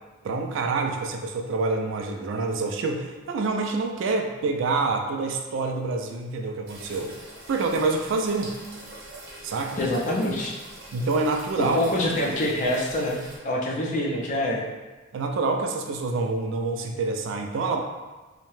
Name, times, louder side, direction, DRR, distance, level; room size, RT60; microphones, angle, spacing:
voice 1, 0.2-7.2 7.5-8.6 9.4-9.8 10.9-11.8 15.1-17.8, right 3 dB, 65° right, 3 dB, 0.3 m, -27 dB
sound 1, 6.7-13.4, right 1 dB, 85° right, 0.9 m, -44 dB
voice 2, 9.8-10.5 11.7-14.6, left 1 dB, 40° left, -3 dB, 0.5 m, -25 dB
2.7 x 2.1 x 3.1 m, 1.2 s
head